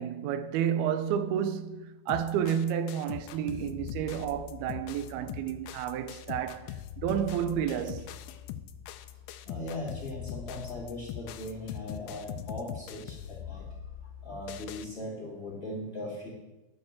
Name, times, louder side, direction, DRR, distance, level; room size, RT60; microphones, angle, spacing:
voice 1, 0.0-6.7 7.0-8.1, right 9 dB, 85° right, 2.6 m, -31 dB
sound 1, 2.1-14.9, left 10 dB, 85° left, 2.5 m, -42 dB
voice 2, 9.4-13.7 14.2-16.3, left 1 dB, 20° left, 2.2 m, -39 dB
11.0 x 6.8 x 7.4 m
omnidirectional pair, 4.4 m